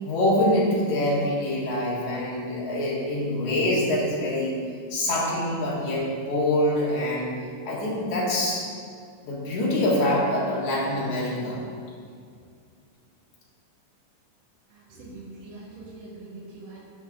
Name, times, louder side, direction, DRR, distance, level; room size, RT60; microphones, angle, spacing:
voice 1, 0.0-4.5 4.9-7.2 7.6-8.6 9.2-11.6, left 1 dB, 60° left, -6 dB, 3.3 m, -25 dB
voice 2, 14.7-16.8, right 2 dB, 70° right, -8 dB, 3.6 m, -43 dB
15.5 x 5.4 x 3.8 m, 2.2 s
omnidirectional pair, 3.9 m